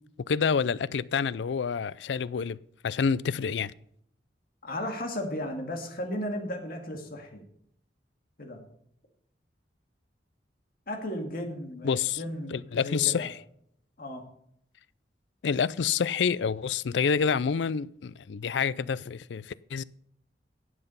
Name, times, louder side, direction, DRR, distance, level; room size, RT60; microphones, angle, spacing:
voice 1, 0.3-2.6 2.8-3.7 11.8-12.2 12.5-13.4 15.4-19.8, left 6 dB, 85° left, 0.4 m, -28 dB
voice 2, 4.6-7.4 8.4-8.6 10.9-13.3 14.0-14.3, left 1 dB, 55° left, 2.2 m, -35 dB
11.0 x 8.0 x 5.5 m
head